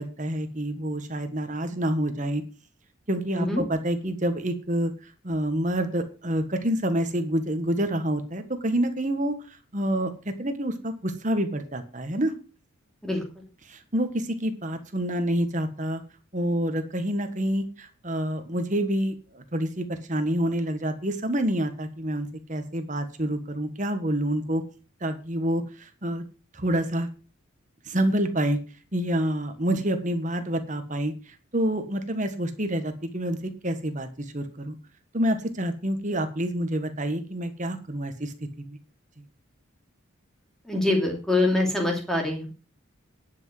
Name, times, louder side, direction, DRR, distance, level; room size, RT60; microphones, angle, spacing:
voice 1, 0.0-2.4 3.1-4.9 5.2-9.3 9.7-12.3 13.7-16.0 16.3-24.6 25.0-26.2 26.5-27.1 27.9-28.6 28.9-31.1 31.5-33.4 33.6-34.7 35.1-38.8, right 1 dB, 35° right, 8 dB, 1.5 m, -27 dB
voice 2, 40.6-42.5, left 2 dB, ahead, 0 dB, 2.7 m, -24 dB
10.5 x 6.1 x 7.7 m, 0.37 s
head